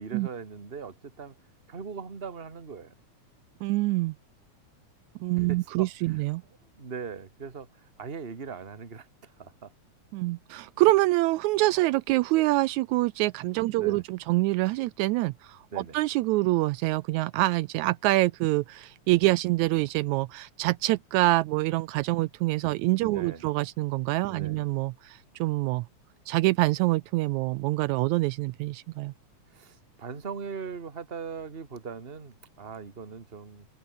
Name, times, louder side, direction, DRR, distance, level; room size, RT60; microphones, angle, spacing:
voice 1, 0.0-1.3 1.7-2.9 5.5-5.9 6.8-7.7 8.0-9.7 13.7-14.0 15.7-16.0 23.0-23.5 24.3-24.6 29.5-33.7, right 5 dB, 20° right, 1.8 m, -40 dB
voice 2, 3.6-4.2 5.2-6.4 10.1-25.9 26.3-29.1, right 19 dB, 80° right, 1.9 m, -26 dB
omnidirectional pair, 3.4 m